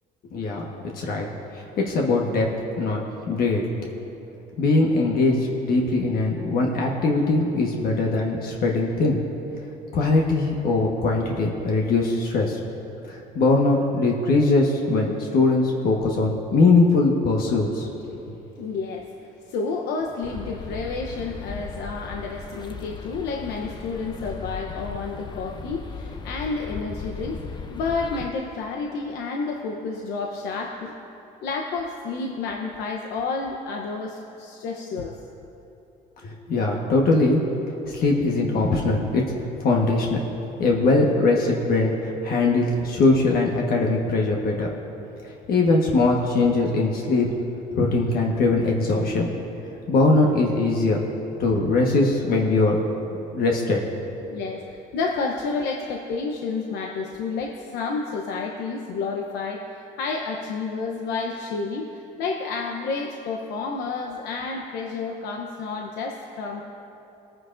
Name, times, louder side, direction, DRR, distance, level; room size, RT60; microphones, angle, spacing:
voice 1, 0.2-0.7 0.9-1.3 1.5-2.5 2.8-3.0 3.3-3.6 4.6-9.2 9.9-12.6 13.1-17.9 36.2-37.4 37.9-39.2 39.6-40.2 40.6-44.8 45.5-47.3 47.7-49.3 49.9-51.0 51.4-52.8 53.3-53.8, left 3 dB, 60° left, -1 dB, 1.3 m, -21 dB
voice 2, 18.6-30.9 31.4-35.2 41.5-41.6 54.3-66.6, left 4 dB, 80° left, 1 dB, 0.9 m, -30 dB
Regents Park - Ducks and Pigeons by lake, 20.2-28.3, left 4 dB, 25° left, 0.6 m, -37 dB
20.5 x 9.4 x 2.6 m, 2.9 s
cardioid pair, 110°, 17 cm